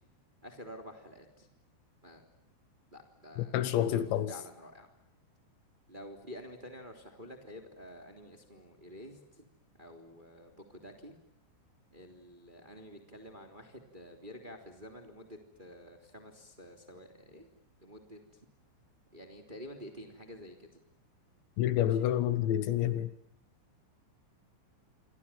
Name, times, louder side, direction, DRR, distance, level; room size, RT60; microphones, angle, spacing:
voice 1, 0.4-1.5 2.0-2.2 2.9-4.9 5.9-9.4 9.8-11.1 11.9-17.5 17.8-18.2 19.1-20.7 22.0-22.1, equal, 10° right, 2.6 m, -49 dB
voice 2, 3.4-4.3 21.6-23.1, left 11 dB, 75° left, 3.2 m, -28 dB
28.0 x 25.5 x 7.4 m
omnidirectional pair, 5.6 m